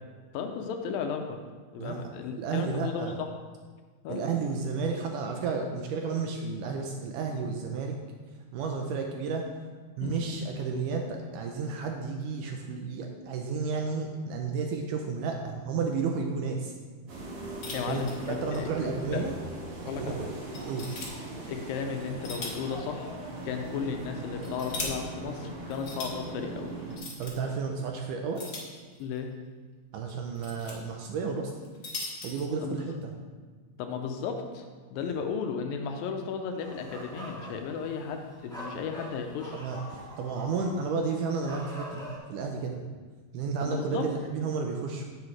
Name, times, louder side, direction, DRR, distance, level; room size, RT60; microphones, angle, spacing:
voice 1, 0.3-1.4 1.7-3.3 4.0-4.4 10.0-10.4 17.7-19.2 19.9-20.3 21.5-23.1 23.4-26.7 29.0-29.3 32.6-33.0 33.8-34.7 34.9-39.6 43.6-44.1, left 6 dB, 85° left, 4 dB, 2.3 m, -34 dB
voice 2, 1.8-3.2 4.1-7.9 8.5-9.4 10.0-16.7 17.9-18.0 18.3-19.3 20.0-20.3 20.7-20.9 27.2-28.5 29.9-31.5 32.2-33.1 39.5-42.8 43.3-45.1, right 5 dB, 80° right, 2 dB, 2.0 m, -32 dB
sound 1, 17.1-27.0, right 2 dB, 55° right, 1.6 m, -40 dB
sound 2, 17.6-18.7 19.0-19.1 19.7-19.8 20.5-21.1 22.0-22.7 23.0-23.1 24.1-24.9 25.7-26.1 26.9-27.3 28.3-29.2 30.1-30.7 31.5-32.4, left 3 dB, 50° left, 1.6 m, -39 dB
sound 3, 36.6-42.2, equal, 5° left, 0.6 m, -44 dB
9.6 x 7.6 x 3.2 m, 1.4 s
omnidirectional pair, 4.2 m